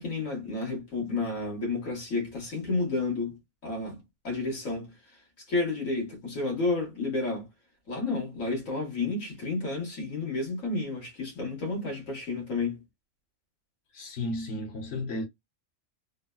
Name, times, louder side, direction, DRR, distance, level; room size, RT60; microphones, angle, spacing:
voice 1, 0.0-7.5 7.9-12.8, left 3 dB, 90° left, 2.0 m, -31 dB
voice 2, 13.9-15.2, left 2 dB, 55° left, 1.3 m, -33 dB
3.8 x 2.2 x 2.3 m
omnidirectional pair, 1.3 m